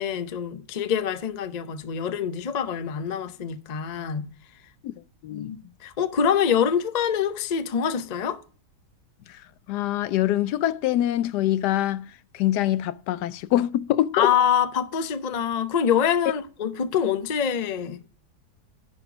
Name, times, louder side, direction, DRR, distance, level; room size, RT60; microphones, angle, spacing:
voice 1, 0.0-4.3 5.3-8.4 14.1-18.0, left 8 dB, 45° left, 0.5 m, -25 dB
voice 2, 9.7-14.3, left 13 dB, 80° left, 1.1 m, -24 dB
10.5 x 4.4 x 5.9 m
omnidirectional pair, 1.8 m